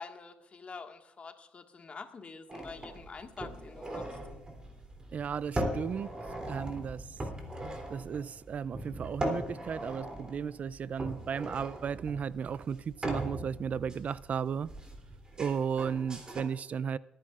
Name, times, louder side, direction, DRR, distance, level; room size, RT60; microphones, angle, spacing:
voice 1, 0.0-4.0, left 4 dB, 45° left, 1.7 m, -46 dB
sound 1, 2.5-16.4, right 1 dB, 25° right, 3.0 m, -40 dB
voice 2, 5.1-6.1 6.4-7.1 7.9-14.7 15.4-17.0, right 7 dB, 55° right, 0.3 m, -34 dB
29.5 x 10.0 x 2.5 m
supercardioid pair, 65°, 3 cm